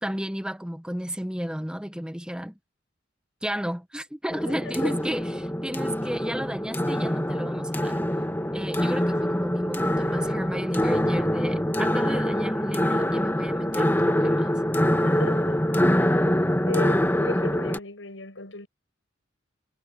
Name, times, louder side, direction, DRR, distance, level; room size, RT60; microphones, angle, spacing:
voice 1, 0.0-2.6 3.4-8.0 8.5-14.5, equal, 5° right, 0.9 m, -32 dB
sound 1, 4.3-17.8, equal, 10° left, 1.8 m, -24 dB
voice 2, 4.5-5.0 14.9-15.6 15.9-16.3 16.6-18.7, left 2 dB, 85° left, 6.5 m, -36 dB
head